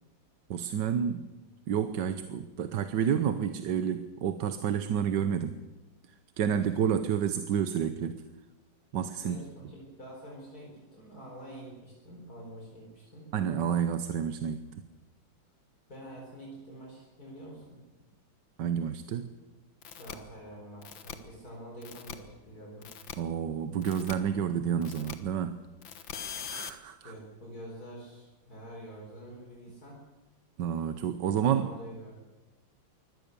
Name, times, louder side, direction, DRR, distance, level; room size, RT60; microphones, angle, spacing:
voice 1, 0.5-1.3 1.7-5.6 6.4-8.2 8.9-9.4 13.3-14.8 18.6-19.3 23.2-25.6 26.5-27.1 30.6-31.7, right 8 dB, 70° right, 10 dB, 1.5 m, -29 dB
voice 2, 9.2-13.3 15.9-17.8 19.9-22.9 27.0-30.0 31.4-32.2, right 1 dB, 50° left, -2 dB, 4.9 m, -46 dB
sound 1, 19.8-20.1 20.8-21.1 21.8-22.1 22.8-23.1 23.8-24.1 24.8-25.1 25.8-26.7, left 8 dB, 75° left, 2.1 m, -41 dB
24.0 x 17.5 x 6.8 m, 1.1 s
omnidirectional pair, 2.1 m